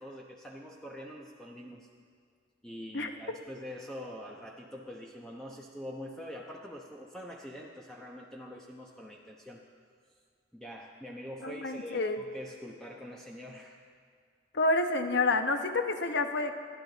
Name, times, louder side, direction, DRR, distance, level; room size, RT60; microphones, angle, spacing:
voice 1, 0.0-1.9 2.6-9.6 10.5-13.8, equal, 5° left, -2 dB, 0.9 m, -44 dB
voice 2, 11.4-12.2 14.5-16.5, left 2 dB, 65° left, 6 dB, 1.0 m, -28 dB
29.0 x 11.5 x 4.0 m, 2.1 s
head